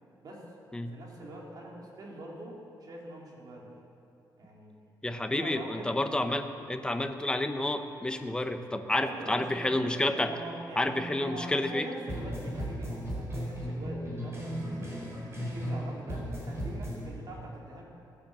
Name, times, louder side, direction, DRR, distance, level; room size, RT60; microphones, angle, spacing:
voice 1, 0.9-3.7 4.4-4.7 5.3-5.9 9.0-9.8 10.2-17.8, right 1 dB, 55° right, -2 dB, 2.9 m, -43 dB
voice 2, 5.0-10.3 10.8-11.9, left 1 dB, 10° left, 7 dB, 0.9 m, -30 dB
sound 1, 12.1-15.8 16.1-17.0, equal, 35° right, 4.6 m, -35 dB
15.5 x 9.8 x 7.6 m, 2.7 s
cardioid pair, 125°, 8 cm